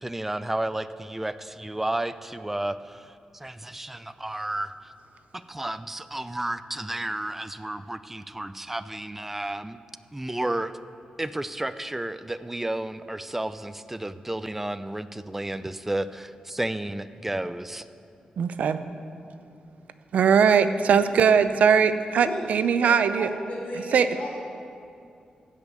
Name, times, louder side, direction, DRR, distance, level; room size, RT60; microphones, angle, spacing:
voice 1, 0.0-4.7 5.3-9.8 10.1-10.7 11.2-17.8, right 1 dB, 10° right, 12 dB, 0.4 m, -32 dB
voice 2, 18.4-18.8 20.1-23.3 23.9-24.1, right 6 dB, 75° right, 11 dB, 0.6 m, -20 dB
voice 3, 23.2-24.3, left 1 dB, 70° left, -9 dB, 3.0 m, -35 dB
15.5 x 5.3 x 8.3 m, 2.5 s
wide cardioid pair, 115°, 2 cm